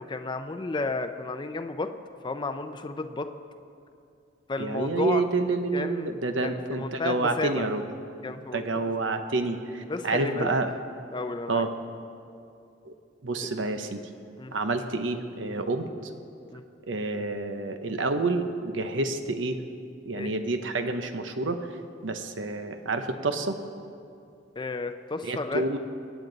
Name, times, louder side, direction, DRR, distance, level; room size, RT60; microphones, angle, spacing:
voice 1, 0.0-1.9 2.2-3.3 4.5-5.2 5.7-6.1 6.4-7.7 8.2-8.9 9.9-10.6 11.1-11.6 13.4-13.6 14.4-14.5 16.5-16.6 20.2-20.3 24.6-25.8, left 3 dB, 25° left, 8 dB, 0.5 m, -32 dB
voice 2, 4.6-7.8 8.5-10.7 11.5-11.7 12.8-12.9 13.2-14.0 14.5-16.1 16.8-19.6 20.1-23.6 25.2-25.8, right 3 dB, 80° right, 7 dB, 0.9 m, -28 dB
25.0 x 9.2 x 4.0 m, 2.5 s
head